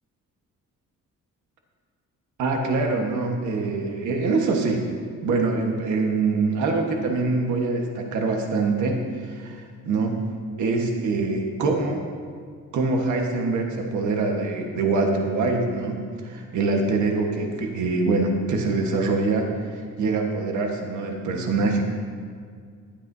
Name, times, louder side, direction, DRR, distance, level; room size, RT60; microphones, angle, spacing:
voice 1, 2.4-4.8 5.2-10.2 10.6-12.0 12.7-21.8, right 3 dB, 70° right, 2 dB, 1.4 m, -24 dB
15.5 x 12.0 x 2.7 m, 2.1 s
cardioid pair, 180°, 31 cm